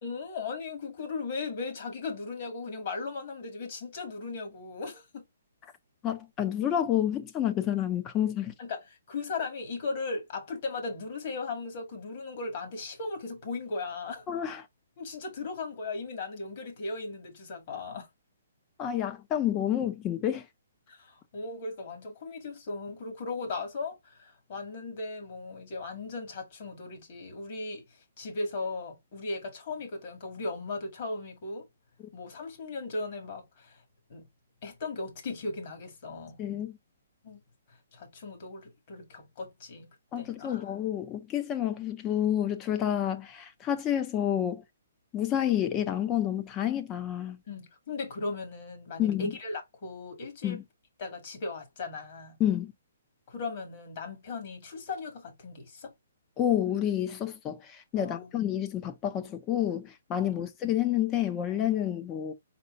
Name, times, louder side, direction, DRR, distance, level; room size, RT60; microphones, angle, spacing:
voice 1, 0.0-5.2 8.6-14.2 15.0-18.1 20.9-31.7 32.1-33.8 34.1-34.3 34.6-36.4 37.2-37.4 37.9-39.9 40.2-40.6 47.5-50.6 51.0-52.4 53.3-55.9 58.0-58.3 60.3-60.5, left 3 dB, 45° left, 2.0 m, -37 dB
voice 2, 6.0-8.5 14.3-14.6 18.8-20.4 36.4-36.8 40.1-44.6 45.1-47.4 49.0-49.3 50.4-50.6 52.4-52.7 56.4-62.3, left 11 dB, 20° left, 0.6 m, -29 dB
4.2 x 4.1 x 2.6 m
hypercardioid pair, 160°, 0 cm